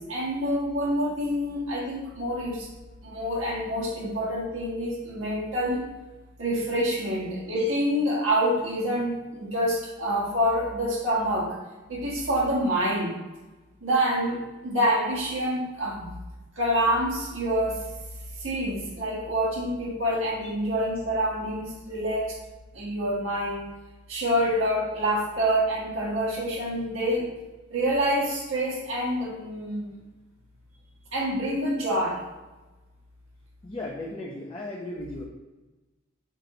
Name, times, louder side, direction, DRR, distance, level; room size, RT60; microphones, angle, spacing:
voice 1, 0.0-2.7 3.0-5.8 6.4-11.6 11.9-13.2 13.8-16.1 16.5-17.8 18.4-22.4 22.7-23.7 24.1-27.3 27.7-29.9 31.1-32.2, equal, 80° right, -4 dB, 1.6 m, -27 dB
voice 2, 33.6-35.2, left 2 dB, 25° left, -3 dB, 0.7 m, -36 dB
7.7 x 3.1 x 3.9 m, 1.2 s
head